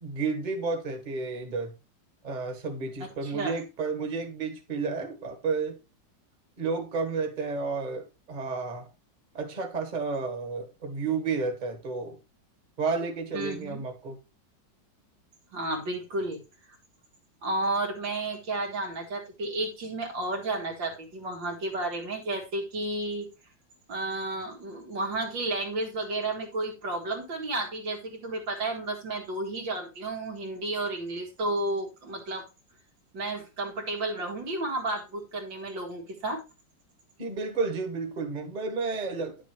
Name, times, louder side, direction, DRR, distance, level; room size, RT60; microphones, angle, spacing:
voice 1, 0.0-1.7 2.2-5.8 6.6-8.9 9.3-12.2 12.8-14.2 37.2-39.4, right 4 dB, 25° right, 1.4 m, -31 dB
voice 2, 3.0-3.6 13.3-13.8 15.5-16.4 17.4-23.3 23.9-32.5 33.1-36.4, right 2 dB, 80° right, 2.6 m, -32 dB
9.7 x 6.9 x 3.0 m
omnidirectional pair, 2.0 m